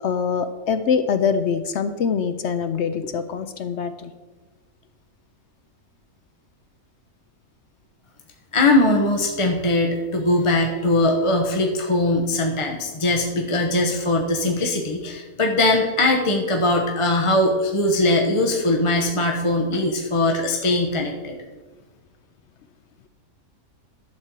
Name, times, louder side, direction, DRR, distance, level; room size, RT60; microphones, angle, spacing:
voice 1, 0.0-4.1, left 6 dB, 65° left, 10 dB, 0.7 m, -24 dB
voice 2, 8.5-21.4, left 2 dB, 25° left, 1 dB, 0.9 m, -21 dB
12.0 x 4.3 x 7.5 m, 1.3 s
omnidirectional pair, 1.6 m